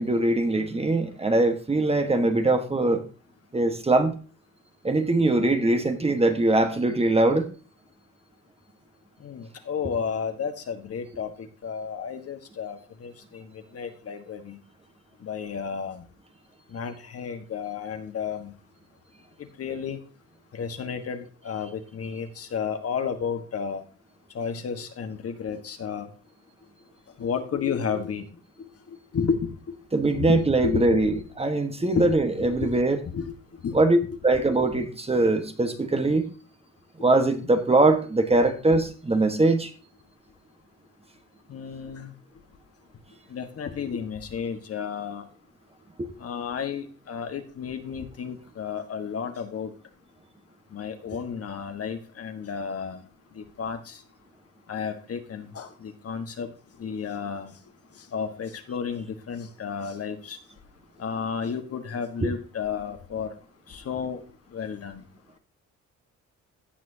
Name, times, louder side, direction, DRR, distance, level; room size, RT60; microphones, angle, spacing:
voice 1, 0.0-3.0 3.5-4.1 4.8-7.5 29.9-33.0 33.7-36.2 37.0-39.7 46.0-46.1 62.2-62.3, right 2 dB, 20° right, 7 dB, 1.3 m, -22 dB
voice 2, 9.2-13.4 13.7-14.6 15.2-16.0 16.7-18.5 19.6-20.0 20.5-23.8 24.3-26.1 27.2-28.2 29.1-29.5 30.2-31.2 32.0-32.1 32.4-32.7 33.1-33.3 33.6-33.8 41.5-42.1 43.3-45.2 46.2-49.7 50.7-53.0 53.4-53.8 54.7-56.5 56.8-57.5 58.1-60.4 61.0-63.3 63.7-64.2 64.5-65.0, left 6 dB, 50° left, 7 dB, 1.5 m, -32 dB
16.0 x 6.0 x 2.8 m, 0.37 s
cardioid pair, 90°, 30 cm